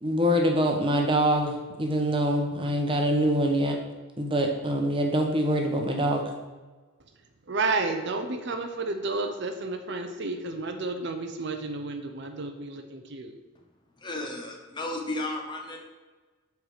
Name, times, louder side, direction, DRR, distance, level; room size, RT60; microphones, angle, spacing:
voice 1, 0.0-3.8 4.2-6.2, equal, 25° right, 2 dB, 1.0 m, -24 dB
voice 2, 7.5-13.3, right 3 dB, 55° right, 6 dB, 0.6 m, -31 dB
voice 3, 14.0-15.8, left 2 dB, 20° left, 2 dB, 0.9 m, -33 dB
7.2 x 4.7 x 5.0 m, 1.3 s
head